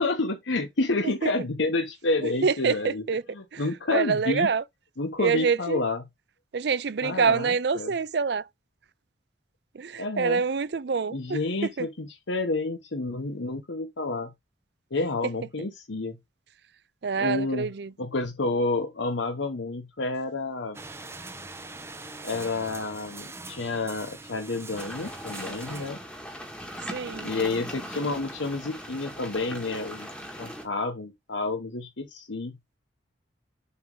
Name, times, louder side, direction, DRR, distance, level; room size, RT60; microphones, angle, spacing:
voice 1, 0.0-3.0 3.3-4.5 5.0-6.0 7.0-7.9 10.0-10.4 11.1-14.3 14.9-16.2 17.2-17.7 18.0-20.8 22.2-26.0 27.2-30.1 30.4-32.5, left 3 dB, 75° left, 1.0 m, -29 dB
voice 2, 2.4-3.2 3.5-3.6 3.9-4.6 5.2-5.8 6.5-8.4 9.8-11.4 11.8-11.9 17.0-17.9 26.9-27.3, right 5 dB, 60° right, 0.5 m, -26 dB
sound 1, 20.7-25.9, right 3 dB, 15° right, 0.7 m, -42 dB
sound 2, 24.8-30.7, equal, 5° left, 1.5 m, -39 dB
7.0 x 2.9 x 5.3 m
head